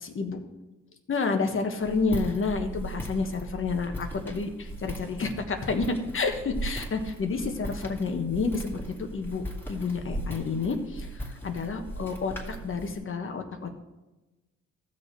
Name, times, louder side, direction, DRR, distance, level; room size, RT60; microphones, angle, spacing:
voice 1, 0.0-0.4 1.1-13.7, left 4 dB, 45° left, 5 dB, 1.4 m, -30 dB
Walk footsteps, 1.8-13.0, right 1 dB, 5° left, 2.4 m, -38 dB
15.5 x 6.7 x 3.4 m, 1.1 s
cardioid pair, 90°, 30 cm